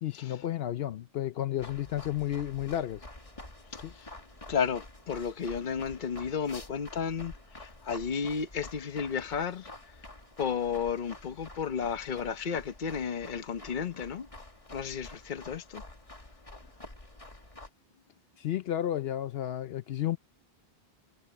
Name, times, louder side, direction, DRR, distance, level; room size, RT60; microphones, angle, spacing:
voice 1, 0.0-3.0 3.8-3.9 18.4-20.2, left 12 dB, 70° left, 0.8 m, -32 dB
sound 1, 1.6-17.7, left 2 dB, 30° left, 2.2 m, -48 dB
voice 2, 3.7-4.1 4.5-9.7 10.4-14.3 14.7-15.8, left 6 dB, 50° left, 1.1 m, -33 dB
omnidirectional pair, 1.1 m